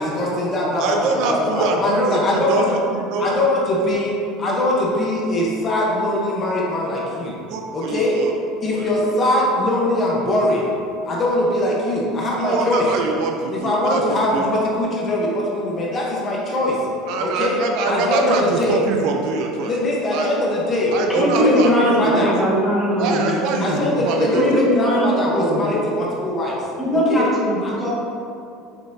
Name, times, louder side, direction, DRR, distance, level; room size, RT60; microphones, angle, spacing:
voice 1, 0.0-0.9 1.3-2.7 3.2-7.4 7.7-8.2 8.6-10.7 11.0-12.8 13.5-16.8 17.2-17.6 17.9-18.8 19.6-22.3 23.6-26.6 26.9-27.3 27.6-27.9, left 1 dB, 25° left, -4 dB, 1.0 m, -21 dB
voice 2, 0.8-3.3 7.5-8.3 8.7-8.9 12.4-14.0 14.3-14.4 17.1-19.7 20.1-20.3 20.9-22.3 23.0-24.7, right 4 dB, 50° right, 2 dB, 0.5 m, -24 dB
voice 3, 21.1-23.2 23.5-23.9 24.3-25.7 26.8-27.9, equal, ahead, -8 dB, 1.4 m, -20 dB
7.1 x 5.6 x 2.7 m, 2.6 s
cardioid pair, 170°, 0 cm